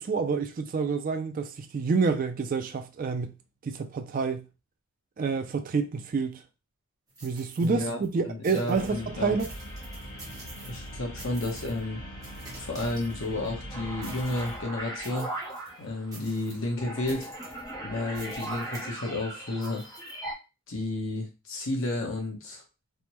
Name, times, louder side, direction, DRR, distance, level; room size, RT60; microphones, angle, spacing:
voice 1, 0.0-3.3 3.6-4.4 5.2-6.4 7.2-9.5, right 4 dB, 40° right, 0.3 m, -28 dB
sound 1, 7.1-8.1 8.4-9.0 9.4-10.9 11.2-11.8 12.2-13.5 14.0-14.6 15.0-15.7 16.1-16.7 17.1-17.7 18.1-18.9 19.6-20.2, right 2 dB, 15° right, 0.8 m, -48 dB
voice 2, 7.6-8.0 8.2-9.3 10.7-12.0 12.6-15.3 15.8-17.3 17.8-19.8 20.7-22.6, left 2 dB, 60° left, 1.0 m, -32 dB
sound 2, 8.7-14.6, equal, 40° left, 1.3 m, -41 dB
sound 3, 13.7-20.3, right 1 dB, 15° left, 0.7 m, -39 dB
3.4 x 2.1 x 2.9 m
head